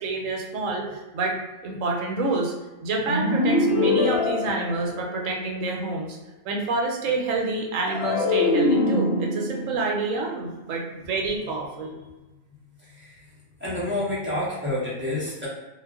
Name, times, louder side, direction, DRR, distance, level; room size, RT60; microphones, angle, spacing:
voice 1, 0.0-1.4 1.6-2.5 2.8-6.2 6.4-11.9, right 3 dB, 75° right, 0 dB, 0.9 m, -28 dB
sound 1, 3.1-5.5 7.9-11.2, left 2 dB, 60° left, 0.7 m, -24 dB
voice 2, 12.8-13.3 13.6-15.5, left 1 dB, 15° right, -9 dB, 0.5 m, -29 dB
2.3 x 2.1 x 3.4 m, 1.1 s
omnidirectional pair, 1.4 m